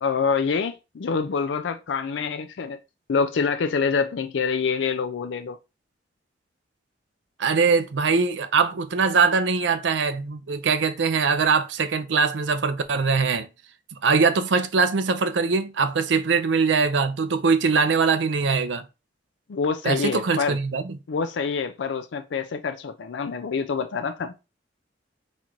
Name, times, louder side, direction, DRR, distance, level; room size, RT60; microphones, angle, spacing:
voice 1, 0.0-2.8 3.1-5.6 19.5-20.6 21.1-24.3, left 5 dB, 80° left, 0.4 m, -26 dB
voice 2, 7.4-13.5 14.0-18.8 19.8-21.0, right 5 dB, 80° right, 0.5 m, -22 dB
4.2 x 2.5 x 4.4 m
head